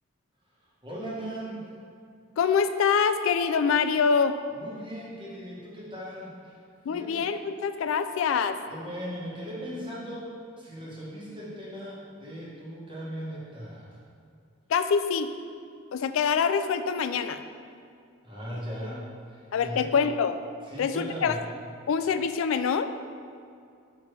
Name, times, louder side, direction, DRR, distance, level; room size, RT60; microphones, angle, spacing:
voice 1, 0.8-1.6 4.6-6.6 6.9-7.2 8.7-10.3 10.6-14.0 18.2-19.9 20.6-21.4, equal, 25° right, -6 dB, 1.2 m, -38 dB
voice 2, 2.4-4.3 6.9-8.6 14.7-15.3 15.9-17.4 19.5-20.4 20.8-21.3 21.9-22.9, left 6 dB, 75° left, 10 dB, 0.3 m, -25 dB
6.3 x 5.3 x 3.2 m, 2.3 s
head